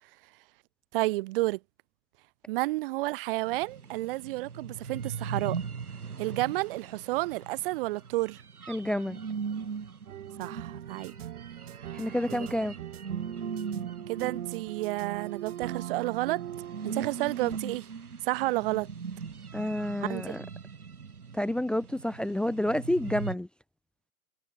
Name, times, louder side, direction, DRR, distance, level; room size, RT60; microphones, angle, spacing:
voice 1, 0.9-1.6 2.5-5.6 6.2-8.4 10.4-11.1 12.3-12.5 14.1-16.4 16.8-17.9 18.2-18.9 20.0-20.3, right 20 dB, 40° right, 1.2 m, -31 dB
sound 1, 3.5-23.4, right 6 dB, 85° right, 2.5 m, -40 dB
voice 2, 8.7-9.2 11.9-12.7 19.5-20.4 21.3-23.5, left 1 dB, ahead, 0.9 m, -29 dB
sound 2, 10.1-17.6, right 12 dB, 60° right, 2.8 m, -41 dB
hypercardioid pair, 120°, 43 cm